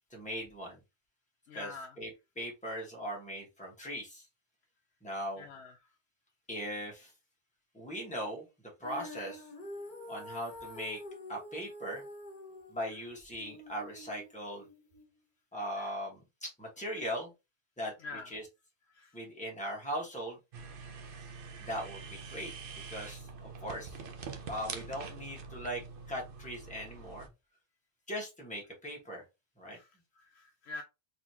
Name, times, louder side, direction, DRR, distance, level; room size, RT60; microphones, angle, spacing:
voice 1, 0.1-0.8 1.5-2.1 2.4-4.2 5.0-5.5 6.5-7.1 7.7-8.4 8.8-9.4 10.1-11.0 11.3-12.0 12.7-14.7 15.5-17.3 17.8-17.9 18.3-18.5 19.1-20.4 21.6-22.5 22.9-23.9 24.5-25.8 26.1-27.3 28.1-29.2 29.6-29.8, equal, 5° left, 1.4 m, -39 dB
voice 2, 1.5-2.0 5.4-5.8 15.7-15.9 18.0-18.3 18.9-19.2 29.7-30.8, left 3 dB, 85° left, 0.8 m, -46 dB
Female singing, 8.8-15.0, left 1 dB, 50° left, 1.3 m, -47 dB
sound 1, 20.5-27.3, right 5 dB, 60° right, 0.8 m, -45 dB
4.0 x 3.2 x 2.8 m
omnidirectional pair, 1.1 m